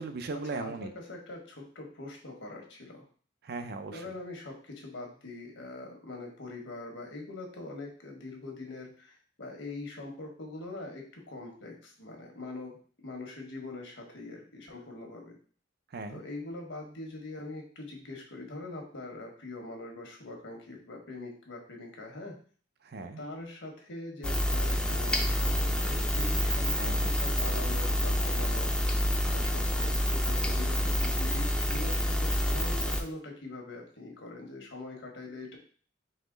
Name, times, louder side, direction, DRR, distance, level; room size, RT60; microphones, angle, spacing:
voice 1, 0.0-0.9 3.4-4.1 15.9-16.2 22.8-23.2 26.8-27.2, right 3 dB, 55° right, 8 dB, 0.5 m, -38 dB
voice 2, 0.5-3.0 3.9-15.3 16.1-22.4 23.2-28.9 29.3-35.6, left 2 dB, 80° left, 1 dB, 1.3 m, -43 dB
sound 1, 24.2-33.0, equal, 5° left, 0.4 m, -28 dB
4.2 x 3.0 x 3.8 m, 0.43 s
head